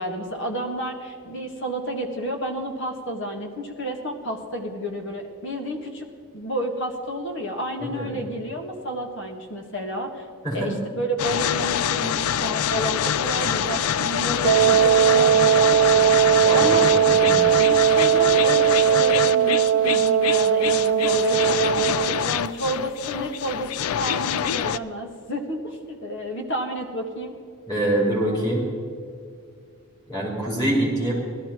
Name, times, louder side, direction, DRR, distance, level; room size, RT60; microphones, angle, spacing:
voice 1, 0.0-6.1 6.3-10.2 10.5-17.2 17.6-23.7 24.0-27.3, equal, 55° left, 3 dB, 1.7 m, -30 dB
voice 2, 7.8-8.1 10.4-10.7 16.4-16.6 17.0-17.4 27.7-28.7 30.1-31.1, right 1 dB, 20° left, -5 dB, 4.4 m, -25 dB
sound 1, 11.2-24.8, left 9 dB, 75° left, 0.4 m, -25 dB
Wind instrument woodwind instrument, 14.4-22.3, right 10 dB, 90° right, 0.3 m, -19 dB
17.5 x 12.5 x 4.5 m, 2.3 s
head